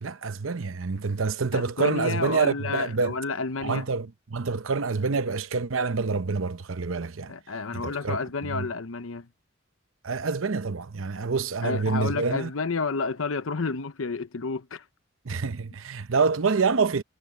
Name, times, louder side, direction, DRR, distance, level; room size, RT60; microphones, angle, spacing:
voice 1, 0.0-3.1 3.6-7.3 7.7-8.7 10.0-12.5 15.2-17.0, right 4 dB, 75° right, 0.8 m, -27 dB
voice 2, 1.5-3.8 7.3-9.3 11.6-14.9, left 4 dB, 80° left, 0.8 m, -30 dB
head